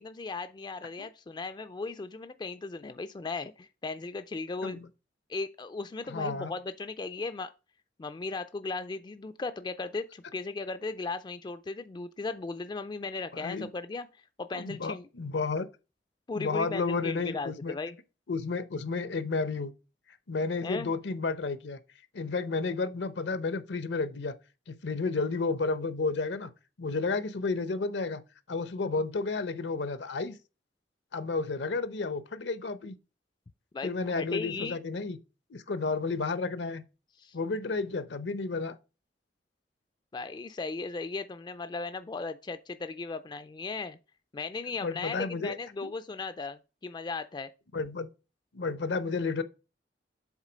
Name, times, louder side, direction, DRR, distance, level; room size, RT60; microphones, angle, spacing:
voice 1, 0.0-4.8 5.3-7.5 8.0-14.1 14.4-15.1 16.3-18.0 20.6-20.9 33.7-34.8 37.2-37.4 40.1-44.0 44.3-47.5, left 3 dB, 25° left, 0.3 m, -37 dB
voice 2, 6.1-6.5 13.3-13.7 14.5-15.7 16.3-17.7 18.3-19.7 20.3-21.8 22.1-24.3 24.7-26.5 26.8-28.2 28.5-30.4 31.1-32.9 33.8-35.2 35.5-36.8 37.3-38.8 44.8-45.6 45.8-45.9 47.7-48.1 48.5-49.4, left 3 dB, 75° left, 0.7 m, -31 dB
7.3 x 3.9 x 5.0 m
head